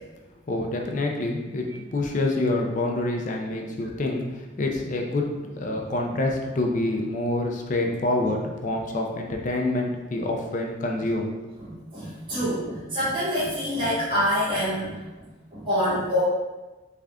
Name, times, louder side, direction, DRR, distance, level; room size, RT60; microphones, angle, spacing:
voice 1, 0.5-1.7 1.9-11.3, left 2 dB, 40° left, 1 dB, 0.4 m, -27 dB
voice 2, 11.6-15.0 15.5-16.2, equal, 25° right, -12 dB, 1.0 m, -26 dB
3.3 x 2.4 x 3.5 m, 1.1 s
head